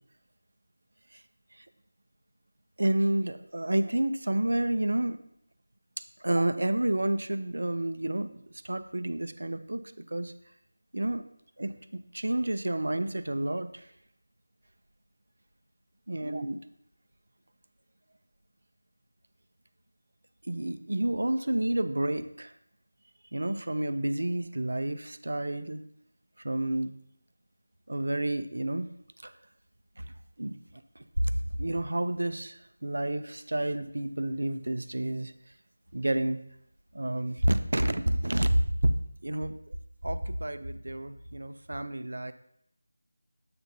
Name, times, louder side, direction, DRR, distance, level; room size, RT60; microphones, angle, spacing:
voice 1, 2.8-5.2 6.0-9.8 10.1-10.3 10.9-11.2 11.6-13.9 16.1-16.6 20.4-22.5 23.3-25.8 26.4-26.9 27.9-28.9 29.2-29.3 30.0-30.1 30.4-30.5 31.0-35.3 35.9-36.4 36.9-38.9 39.2-39.5 40.0-42.3, right 1 dB, 75° right, 11 dB, 0.6 m, -29 dB
7.6 x 5.9 x 2.8 m, 0.73 s
figure-of-eight pair, 170°, 0 cm